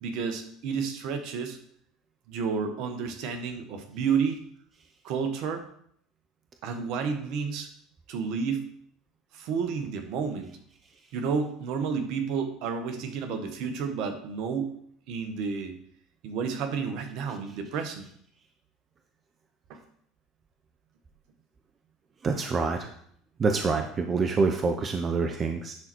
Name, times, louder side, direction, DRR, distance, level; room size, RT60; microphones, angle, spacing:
voice 1, 0.0-1.6 2.3-4.4 5.0-5.6 6.6-7.7 8.1-8.7 9.3-10.5 11.1-14.7 15.1-15.8 16.2-18.1 19.7-19.8, right 6 dB, 65° right, 6 dB, 1.4 m, -31 dB
voice 2, 22.2-22.9 23.4-25.7, right 4 dB, 35° right, 5 dB, 0.9 m, -26 dB
10.5 x 4.1 x 4.6 m, 0.65 s
hypercardioid pair, 75°, 0 cm